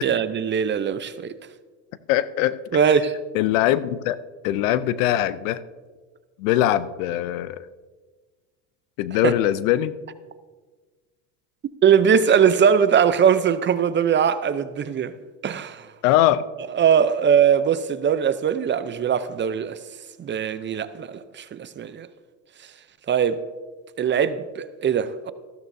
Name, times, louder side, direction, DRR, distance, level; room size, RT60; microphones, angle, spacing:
voice 1, 0.0-1.3 2.7-3.2 9.2-9.3 11.8-15.1 15.4-15.9 16.8-19.8 20.2-22.1 23.1-23.4 24.0-25.3, right 7 dB, 30° right, 0.6 m, -20 dB
voice 2, 2.1-2.8 3.3-4.2 4.4-5.6 6.4-7.7 9.0-9.9 16.0-16.4, left 13 dB, 85° left, 0.6 m, -21 dB
14.0 x 12.5 x 2.7 m
supercardioid pair, 100°, 39 cm